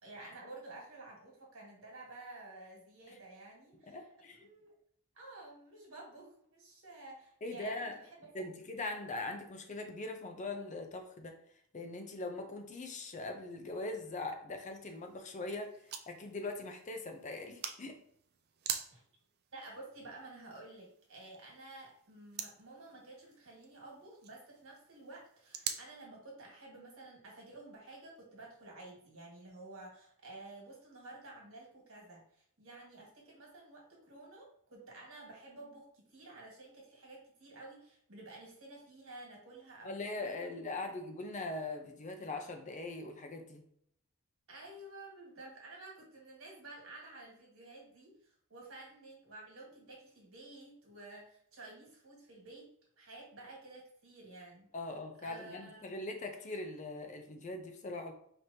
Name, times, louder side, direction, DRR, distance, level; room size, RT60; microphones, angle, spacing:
voice 1, 0.0-4.1 4.3-4.7 5.1-8.3 18.9-19.0 19.5-40.8 44.5-52.7 53.0-54.7 55.2-56.0, right 2 dB, 65° right, -1 dB, 1.7 m, -52 dB
voice 2, 3.9-4.5 7.4-7.9 8.3-11.4 11.7-18.0 39.8-43.6 54.7-58.1, left 2 dB, 35° left, 5 dB, 0.5 m, -41 dB
sound 1, 14.9-25.8, right 8 dB, 45° right, 0.4 m, -46 dB
5.0 x 2.9 x 2.8 m, 0.67 s
head